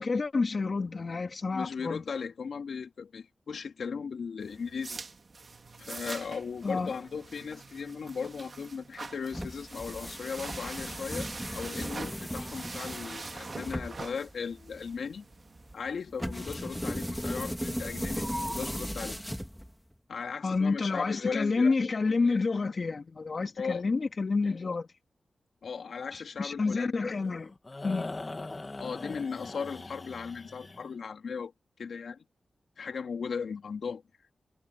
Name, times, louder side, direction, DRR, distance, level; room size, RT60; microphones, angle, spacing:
voice 1, 0.0-2.0 6.6-6.9 20.4-24.9 26.1-27.5 27.8-28.1, left 4 dB, 50° left, 2.6 m, -29 dB
voice 2, 1.5-5.0 5.8-11.3 11.5-15.2 15.7-19.2 20.1-21.7 23.6-23.8 25.6-27.1 28.8-31.5 31.8-32.2 32.8-34.0, left 5 dB, 80° left, 3.3 m, -37 dB
sound 1, 4.4-15.7, right 3 dB, 50° right, 2.4 m, -44 dB
sound 2, 9.3-19.9, equal, 5° left, 3.6 m, -37 dB
sound 3, 27.1-30.9, left 2 dB, 30° left, 2.8 m, -41 dB
wide cardioid pair, 85°, 0 cm